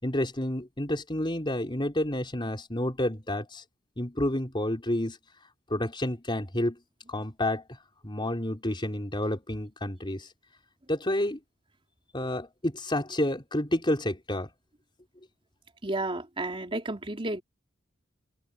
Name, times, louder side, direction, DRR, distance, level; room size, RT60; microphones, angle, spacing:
voice 1, 0.0-3.6 4.0-5.2 5.7-6.8 7.1-7.6 8.0-10.3 10.9-11.4 12.1-14.5, left 1 dB, 25° left, 4.5 m, -29 dB
voice 2, 15.8-17.4, right 2 dB, 25° right, 3.2 m, -32 dB
head